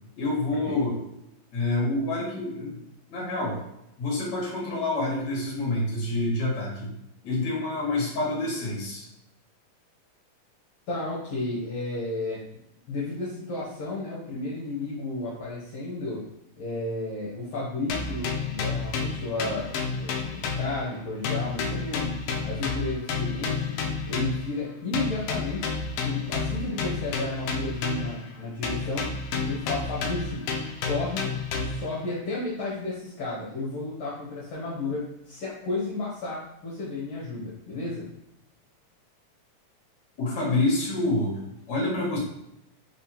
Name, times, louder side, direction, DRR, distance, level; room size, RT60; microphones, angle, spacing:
voice 1, 0.2-1.0 1.5-3.6 4.0-6.9 7.2-9.1 40.2-41.4 41.7-42.2, left 2 dB, 45° left, -4 dB, 1.7 m, -27 dB
voice 2, 10.9-12.4 12.9-16.2 16.6-22.2 22.4-23.8 24.1-25.7 26.0-29.2 29.5-30.4 30.8-31.3 31.5-38.1, left 2 dB, 65° left, -6 dB, 1.8 m, -32 dB
sound 1, 17.9-21.0 21.2-24.5 24.9-28.3 28.6-31.9, left 4 dB, 85° left, 1.4 m, -30 dB
4.6 x 3.4 x 2.9 m, 0.81 s
omnidirectional pair, 3.4 m